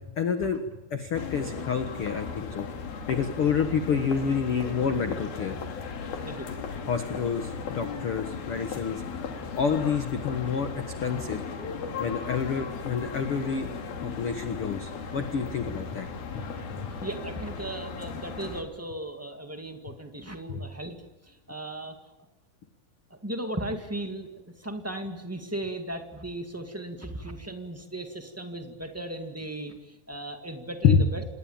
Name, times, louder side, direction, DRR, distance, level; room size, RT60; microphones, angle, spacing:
voice 1, 0.2-0.6 0.9-2.7 3.1-5.6 6.9-9.0 9.5-10.7 11.0-11.4 12.0-13.7 14.0-16.1 16.3-16.4 20.5-20.6 30.8-31.1, left 6 dB, 55° left, 7 dB, 1.6 m, -28 dB
sound 1, 1.1-18.6, left 5 dB, 75° left, 4.4 m, -37 dB
voice 2, 6.2-6.5 11.7-11.8 17.0-21.0 21.2-22.0 23.1-24.3 24.5-31.2, right 1 dB, 15° right, 5 dB, 0.5 m, -36 dB
27.5 x 20.0 x 8.9 m, 1.0 s
omnidirectional pair, 4.3 m